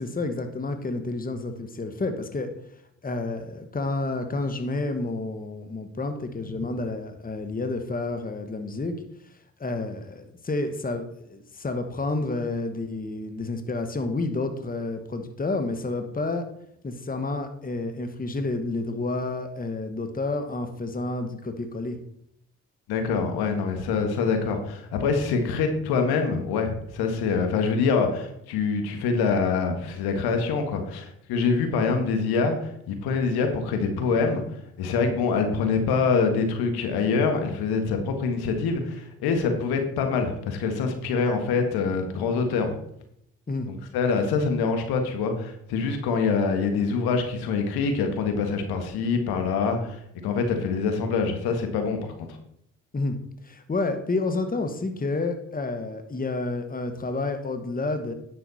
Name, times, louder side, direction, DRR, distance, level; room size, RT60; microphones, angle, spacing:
voice 1, 0.0-2.5 3.0-8.9 9.6-16.4 16.8-22.0 43.5-43.7 52.9-53.2 53.4-58.1, left 2 dB, 20° left, 8 dB, 1.3 m, -30 dB
voice 2, 22.9-34.4 34.8-42.7 43.7-52.0, left 5 dB, 70° left, 6 dB, 1.6 m, -25 dB
9.9 x 6.8 x 4.2 m, 0.72 s
hypercardioid pair, 45°, 39 cm